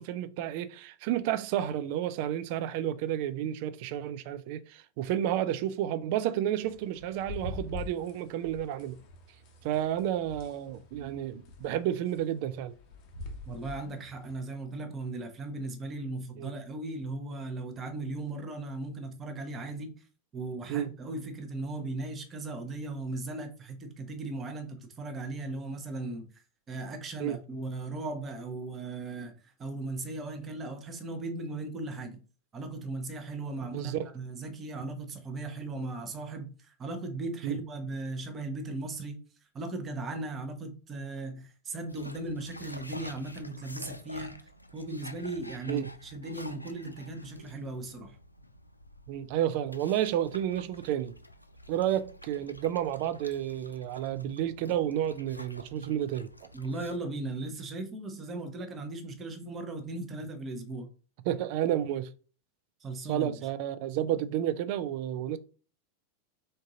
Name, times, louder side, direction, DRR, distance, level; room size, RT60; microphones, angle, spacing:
voice 1, 0.0-9.0 9.6-12.7 16.4-16.5 20.7-20.9 27.2-27.4 33.7-34.0 37.4-37.6 45.7-45.9 49.1-51.2 51.7-56.3 61.3-62.1 63.1-65.4, right 11 dB, 45° right, 0.4 m, -31 dB
sound 1, 6.6-14.3, left 3 dB, 40° left, 0.8 m, -45 dB
voice 2, 13.5-19.9 20.3-26.3 26.7-32.2 32.5-39.2 39.5-44.3 44.7-48.2 56.5-60.9 62.8-63.4, right 2 dB, 25° right, 0.8 m, -37 dB
sound 2, 41.9-57.0, left 1 dB, 85° left, 0.3 m, -49 dB
3.7 x 2.6 x 3.8 m
figure-of-eight pair, 90°, 0 cm